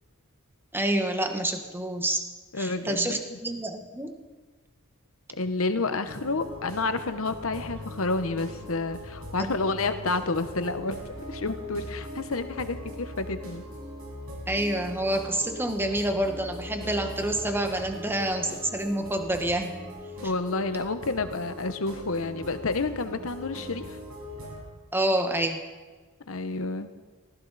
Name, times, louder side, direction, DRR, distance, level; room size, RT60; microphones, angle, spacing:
voice 1, 0.7-2.2 2.6-4.2 9.4-9.5 14.5-19.8 24.9-25.6, right 1 dB, 10° right, 5 dB, 1.3 m, -28 dB
voice 2, 2.5-3.4 5.4-13.6 20.2-24.0 26.3-26.9, left 3 dB, 75° left, 10 dB, 1.1 m, -30 dB
sound 1, 6.0-24.6, left 1 dB, 75° right, 6.3 m, -41 dB
19.5 x 15.5 x 4.2 m, 1.4 s
head